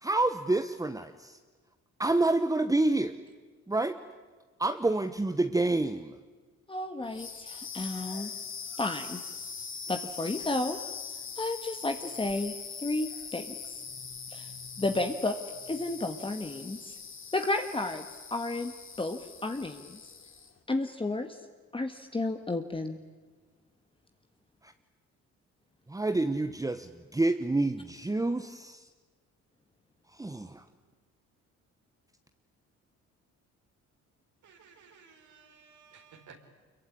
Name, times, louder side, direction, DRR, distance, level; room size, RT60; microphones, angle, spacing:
voice 1, 0.0-1.4 2.0-3.1 3.7-4.0 4.6-6.1 24.6-24.7 25.9-28.8 30.1-30.6, right 2 dB, 10° right, 8 dB, 1.1 m, -28 dB
voice 2, 6.7-8.3 8.8-9.2 9.9-10.8 11.4-13.8 14.3-14.5 14.8-15.4 15.7-17.0 17.3-18.1 18.3-20.0 20.7-21.4 21.7-23.0, left 2 dB, 15° left, 6 dB, 1.6 m, -32 dB
sound 1, 7.0-20.6, left 6 dB, 40° left, 3.0 m, -42 dB
voice 3, 34.4-36.4, right 6 dB, 70° right, 3 dB, 4.5 m, -55 dB
25.0 x 23.0 x 10.0 m, 1.4 s
cardioid pair, 90°, 30 cm